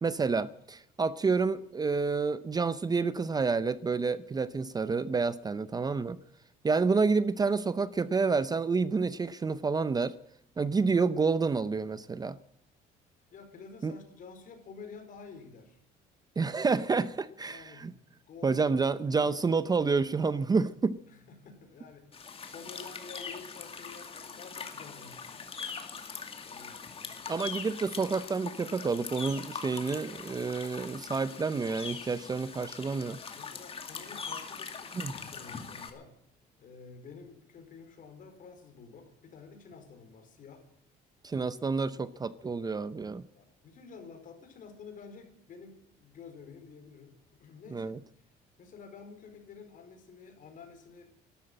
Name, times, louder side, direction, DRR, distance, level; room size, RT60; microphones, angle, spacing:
voice 1, 0.0-6.2 6.6-10.1 10.6-12.4 13.8-13.9 16.4-17.9 18.4-21.0 27.3-33.2 35.0-35.1 41.2-43.2 47.7-48.0, right 4 dB, 25° right, 0.6 m, -29 dB
voice 2, 13.3-15.8 17.4-17.9 18.3-19.5 21.1-25.4 26.4-27.4 33.3-36.1 36.6-40.6 43.3-48.0 48.6-51.1, left 5 dB, 50° left, 4.8 m, -50 dB
sound 1, 22.1-35.9, left 5 dB, 35° left, 2.4 m, -42 dB
13.0 x 12.5 x 8.8 m
cardioid pair, 110°, 17 cm